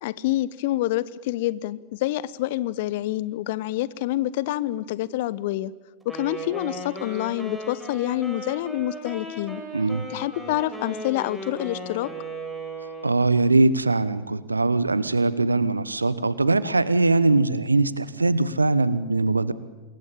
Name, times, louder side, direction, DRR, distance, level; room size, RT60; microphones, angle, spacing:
voice 1, 0.0-5.7 6.0-9.6 10.1-12.1, left 15 dB, 50° left, 20 dB, 0.9 m, -27 dB
Wind instrument woodwind instrument, 6.0-13.3, right 1 dB, ahead, 6.8 m, -36 dB
voice 2, 9.7-10.0 13.0-19.5, right 3 dB, 80° right, 17 dB, 1.1 m, -21 dB
27.0 x 22.0 x 8.8 m, 1.2 s
figure-of-eight pair, 90°, 0 cm